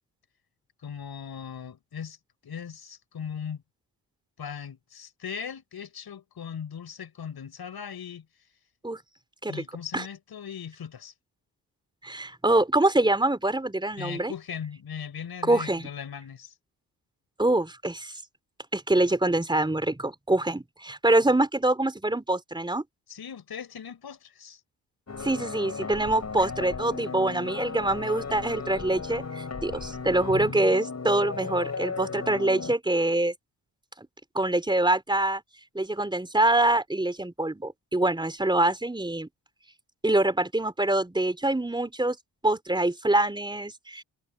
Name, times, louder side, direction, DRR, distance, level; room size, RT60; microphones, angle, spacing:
voice 1, 0.8-2.2 2.4-3.6 4.4-8.3 9.5-11.1 14.0-16.5 23.1-24.6, left 7 dB, 60° left, 6.9 m, -39 dB
voice 2, 12.0-14.3 15.5-15.9 17.4-18.1 18.7-22.8 25.2-33.3 34.0-34.1 34.3-35.4 35.7-39.3 40.0-42.2 42.4-44.0, right 2 dB, 10° right, 3.9 m, -25 dB
sound 1, 25.1-32.7, left 5 dB, 40° left, 6.2 m, -35 dB
cardioid pair, 70°, 42 cm